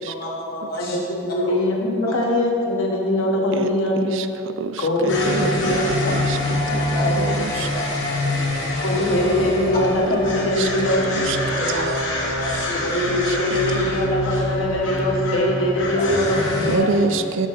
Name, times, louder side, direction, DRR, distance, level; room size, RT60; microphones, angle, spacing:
voice 1, 0.2-1.0 1.4-1.6 2.1-2.2 6.7-7.3 7.6-7.8 8.2-8.6 11.6-11.9 12.2-12.8 15.9-16.1, left 1 dB, 50° left, -4 dB, 1.6 m, -30 dB
voice 2, 0.8-4.1 4.8-6.8 8.8-11.3 12.8-17.2, left 1 dB, 90° left, -1 dB, 1.3 m, -22 dB
voice 3, 4.0-6.8 7.2-7.7 10.6-12.0 13.3-13.8 16.7-17.5, right 4 dB, 70° right, 10 dB, 0.4 m, -28 dB
sound 1, 5.1-16.8, left 1 dB, 70° left, 1.2 m, -25 dB
7.3 x 7.0 x 4.0 m, 2.6 s
head